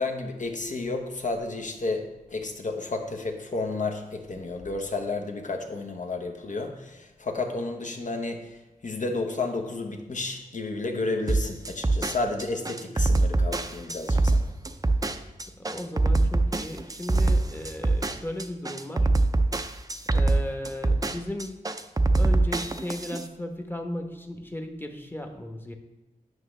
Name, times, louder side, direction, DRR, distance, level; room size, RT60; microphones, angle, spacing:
voice 1, 0.0-8.6 8.8-14.5, left 3 dB, 55° left, 4 dB, 1.1 m, -31 dB
sound 1, 11.3-23.3, right 2 dB, 25° right, 0.5 m, -24 dB
voice 2, 15.6-19.1 20.1-21.7 22.1-25.7, left 1 dB, 15° left, 5 dB, 1.1 m, -36 dB
9.3 x 6.1 x 3.3 m, 1.0 s
cardioid pair, 60°, 15 cm